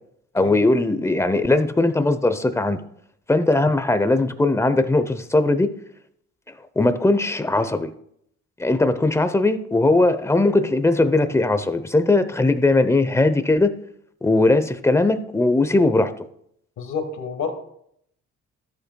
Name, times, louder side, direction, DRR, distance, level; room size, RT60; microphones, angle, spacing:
voice 1, 0.3-2.8 3.3-5.7 6.8-7.9 8.6-13.7 14.2-16.1, left 2 dB, 10° left, 11 dB, 0.7 m, -19 dB
voice 2, 16.8-17.5, left 5 dB, 70° left, 5 dB, 1.5 m, -29 dB
13.0 x 8.1 x 2.3 m, 0.70 s
cardioid pair, 90°, 30 cm